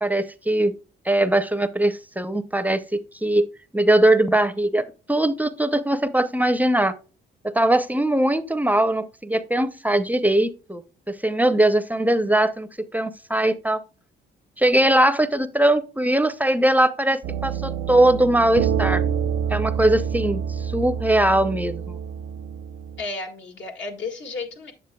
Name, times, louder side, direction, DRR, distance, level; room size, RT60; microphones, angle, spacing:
voice 1, 0.0-0.7 1.1-3.5 3.7-6.9 7.4-10.8 11.1-13.8 14.6-19.0 19.5-22.0, right 1 dB, 10° right, 0.5 m, -21 dB
sound 1, 17.2-23.0, right 7 dB, 90° right, 0.7 m, -27 dB
voice 2, 23.0-24.7, left 3 dB, 70° left, 1.9 m, -33 dB
8.1 x 7.2 x 2.2 m
cardioid pair, 90°, 20 cm